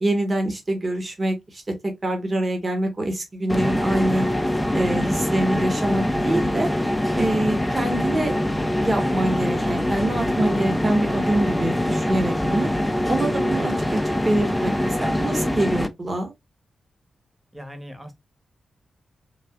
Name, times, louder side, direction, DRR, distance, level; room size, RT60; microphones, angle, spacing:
voice 1, 0.0-4.3 4.7-6.7 7.2-8.3 8.8-12.7 13.1-14.0 14.2-16.3, right 1 dB, 40° right, 1.1 m, -25 dB
sound 1, 3.5-15.9, left 1 dB, 10° left, 0.5 m, -24 dB
voice 2, 7.3-7.7 17.5-18.1, left 1 dB, 15° right, 1.1 m, -38 dB
3.2 x 2.3 x 2.3 m
supercardioid pair, 40°, 0 cm